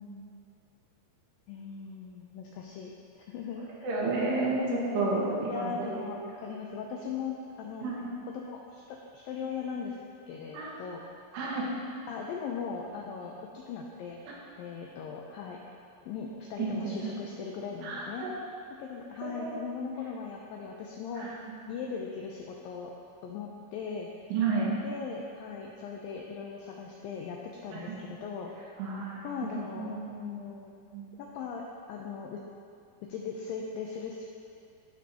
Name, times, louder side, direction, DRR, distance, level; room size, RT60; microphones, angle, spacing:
voice 1, 1.5-8.0 8.5-10.0 10.3-11.2 12.1-14.2 14.6-15.6 16.1-18.3 18.8-21.3 21.7-22.9 23.2-24.1 24.8-28.8 29.2-30.7 31.2-32.4 33.0-34.2, left 6 dB, 90° left, 0 dB, 2.0 m, -39 dB
voice 2, 3.8-6.1 7.8-8.0 10.5-10.7 11.3-11.7 16.6-17.2 17.8-18.3 19.2-19.6 21.2-21.6 24.3-24.7 27.7-27.8 28.8-29.3 29.8-30.0 30.9-31.1, right 3 dB, 85° right, -4 dB, 3.4 m, -31 dB
14.0 x 5.3 x 2.9 m, 2.5 s
omnidirectional pair, 4.7 m